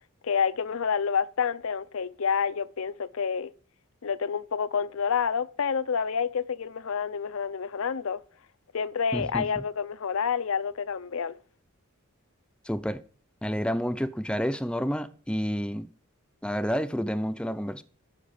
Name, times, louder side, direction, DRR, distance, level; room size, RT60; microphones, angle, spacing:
voice 1, 0.2-3.5 4.0-8.2 8.7-11.4, left 6 dB, 75° left, 0.6 m, -28 dB
voice 2, 9.1-9.6 12.7-13.0 13.4-15.9 16.4-17.8, equal, 5° left, 0.6 m, -29 dB
10.5 x 6.7 x 8.4 m
head